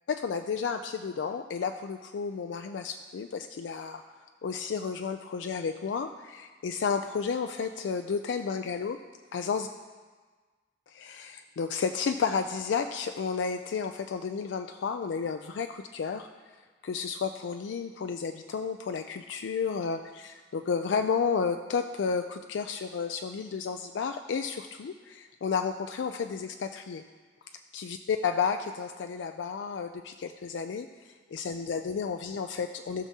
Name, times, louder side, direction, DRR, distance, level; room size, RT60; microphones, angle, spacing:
voice 1, 0.1-4.0 4.4-9.0 9.3-9.7 10.9-16.3 16.8-27.0 27.7-30.9 31.3-33.1, left 5 dB, 80° left, 6 dB, 0.4 m, -32 dB
18.0 x 6.0 x 2.8 m, 1.4 s
head